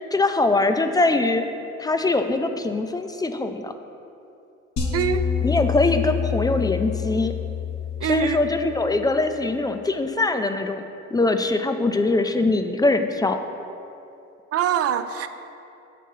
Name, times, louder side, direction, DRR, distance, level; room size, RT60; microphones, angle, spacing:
voice 1, 0.1-1.4 1.8-3.7 5.4-7.3 8.1-10.8 11.1-13.4, left 2 dB, 15° left, 7 dB, 0.3 m, -22 dB
sound 1, 4.8-9.1, left 8 dB, 65° left, 1.1 m, -27 dB
voice 2, 4.9-5.3 8.0-8.4 14.5-15.3, right 9 dB, 50° right, 11 dB, 0.4 m, -24 dB
7.4 x 3.7 x 5.5 m, 2.7 s
cardioid pair, 90°, 30 cm